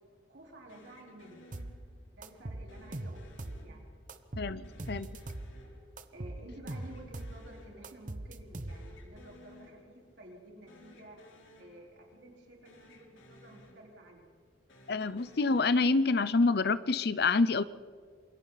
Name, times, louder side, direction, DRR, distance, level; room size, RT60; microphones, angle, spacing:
voice 1, 0.3-1.5 2.2-3.8 6.1-11.2 11.6-14.3, right 1 dB, 70° right, -1 dB, 4.3 m, -52 dB
sound 1, 0.7-2.2 2.7-4.2 4.6-6.4 6.7-8.2 8.5-10.2 10.6-12.4 12.6-14.2 14.6-16.4, left 1 dB, 90° left, 3.6 m, -58 dB
sound 2, 1.5-1.8 2.2-3.6 4.1-5.5 6.0-7.4 7.8-9.1, right 1 dB, 40° right, 1.0 m, -41 dB
voice 2, 4.4-5.1 14.9-17.6, left 3 dB, 55° left, 16 dB, 0.6 m, -27 dB
27.5 x 23.0 x 4.1 m, 2.1 s
head